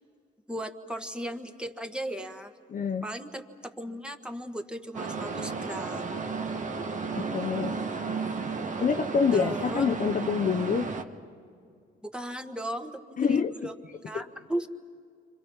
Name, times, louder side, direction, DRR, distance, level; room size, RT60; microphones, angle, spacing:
voice 1, 0.5-2.5 3.0-6.3 9.3-9.9 12.0-13.7 14.0-14.7, right 1 dB, 5° right, 6 dB, 1.5 m, -36 dB
voice 2, 2.7-3.1 7.1-7.8 8.8-10.9 13.2-13.5 14.1-14.2, left 6 dB, 45° left, 5 dB, 0.8 m, -26 dB
sound 1, 4.9-11.0, right 4 dB, 40° right, 1.5 m, -33 dB
30.0 x 26.0 x 5.6 m, 2.3 s
cardioid pair, 90°, 20 cm